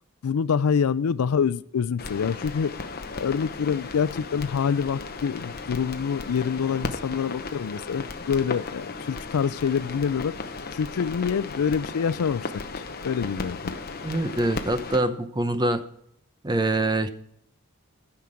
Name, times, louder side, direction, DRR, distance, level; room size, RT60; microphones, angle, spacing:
voice 1, 0.2-2.8 3.1-10.4 10.7-12.5 13.0-13.7, left 6 dB, 75° left, 17 dB, 0.4 m, -26 dB
sound 1, 2.0-15.0, left 3 dB, 45° left, 0.9 m, -35 dB
voice 2, 14.0-15.8 16.4-17.1, right 1 dB, 20° right, 10 dB, 0.7 m, -24 dB
13.0 x 5.9 x 4.9 m, 0.71 s
head